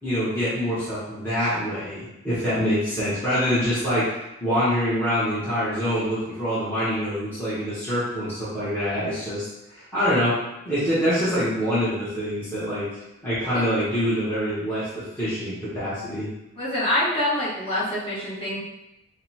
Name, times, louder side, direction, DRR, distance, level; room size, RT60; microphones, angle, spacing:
voice 1, 0.0-4.1 4.4-10.4 10.6-12.9 13.2-16.3, equal, 10° left, -13 dB, 1.0 m, -25 dB
voice 2, 16.6-18.6, left 1 dB, 25° left, -9 dB, 1.2 m, -25 dB
5.0 x 2.1 x 2.8 m, 0.94 s
head